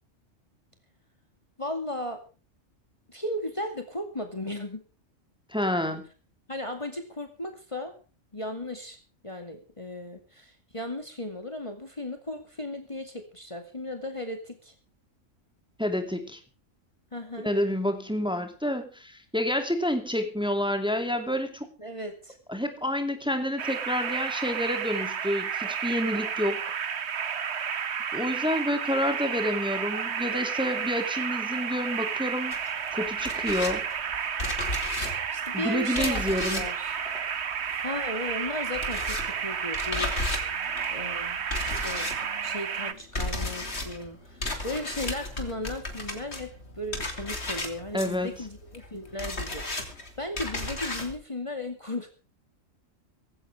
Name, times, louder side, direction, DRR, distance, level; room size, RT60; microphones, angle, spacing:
voice 1, 1.6-2.2 3.1-4.8 6.5-7.9 8.3-9.0 9.2-14.7 17.1-17.5 21.8-22.4 35.3-37.0 37.8-40.2 40.9-42.1 42.4-46.5 46.8-52.1, left 1 dB, 25° left, 6 dB, 2.3 m, -36 dB
voice 2, 5.5-6.0 15.8-16.4 17.4-21.7 22.5-26.7 28.1-32.6 32.9-33.9 35.5-36.6 47.9-48.4, left 1 dB, 5° right, 6 dB, 2.6 m, -29 dB
sound 1, 23.6-42.9, right 7 dB, 55° right, 1.3 m, -31 dB
sound 2, 32.5-38.0 38.3-51.2, left 2 dB, 55° left, 3.3 m, -35 dB
18.0 x 16.0 x 3.4 m, 0.35 s
omnidirectional pair, 1.3 m